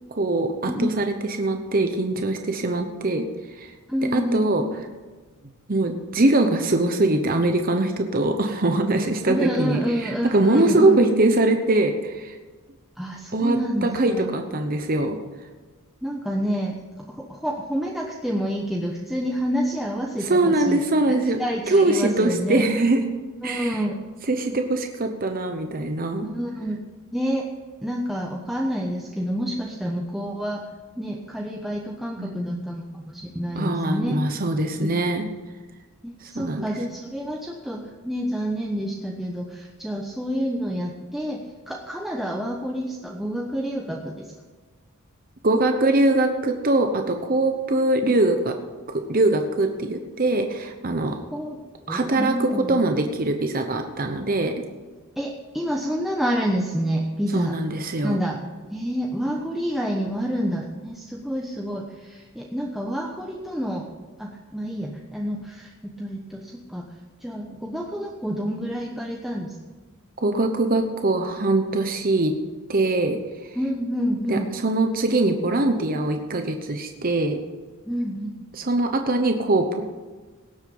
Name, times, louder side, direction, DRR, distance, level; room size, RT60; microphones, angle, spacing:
voice 1, 0.2-3.3 3.6-3.7 4.1-4.6 5.7-12.4 13.3-15.2 20.2-21.4 21.7-23.0 23.4-23.8 24.3-26.3 32.2-32.6 33.6-35.2 36.2-36.7 45.4-48.5 49.1-51.2 51.9-54.5 57.3-58.2 70.2-72.3 72.7-73.2 73.5-73.6 74.3-77.4 78.5-79.8, right 2 dB, 40° right, 5 dB, 0.9 m, -22 dB
voice 2, 0.7-1.1 3.9-4.7 9.2-11.0 13.0-14.3 16.0-16.7 17.1-22.6 23.4-23.9 26.2-26.8 27.1-27.5 27.8-30.6 31.0-34.1 34.8-35.0 36.0-44.3 51.3-51.6 51.8-52.8 55.2-57.6 58.0-58.4 58.7-63.9 64.2-65.7 66.0-66.8 67.2-69.6 73.5-74.5 77.9-78.4, equal, ahead, -1 dB, 1.0 m, -28 dB
18.0 x 8.0 x 5.4 m, 1.3 s
head